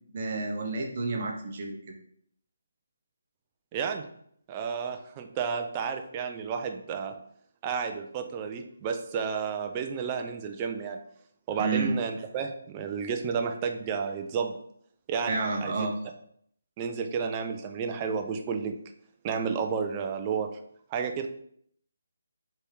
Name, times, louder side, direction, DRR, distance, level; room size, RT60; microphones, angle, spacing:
voice 1, 0.1-1.8 11.6-11.9 15.3-15.9, right 3 dB, 40° right, 1 dB, 0.8 m, -30 dB
voice 2, 3.7-4.1 4.5-7.1 7.6-11.0 11.5-14.6 15.1-15.8 16.8-18.7 19.2-20.5 20.9-21.3, right 6 dB, 20° right, 5 dB, 0.4 m, -31 dB
3.4 x 3.3 x 4.5 m, 0.67 s
hypercardioid pair, 165°, 0 cm